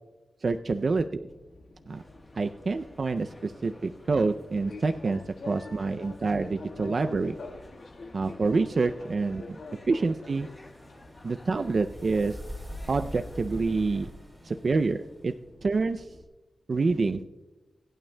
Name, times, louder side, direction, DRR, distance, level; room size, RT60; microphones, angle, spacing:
voice 1, 0.4-1.0 1.9-2.0 2.4-7.4 8.1-9.6 9.9-10.5 11.2-12.4 12.9-14.1 14.4-15.0 15.2-15.3 15.6-16.1 16.7-17.3, right 3 dB, 45° right, 7 dB, 0.4 m, -27 dB
Fixed-wing aircraft airplane, 0.9-16.2, left 3 dB, 85° left, 1.6 m, -48 dB
sound 1, 1.9-14.1, left 1 dB, 25° left, 1.2 m, -54 dB
sound 2, 10.0-15.3, equal, 15° right, 2.5 m, -43 dB
25.0 x 8.9 x 2.2 m, 1.1 s
wide cardioid pair, 130°, 0 cm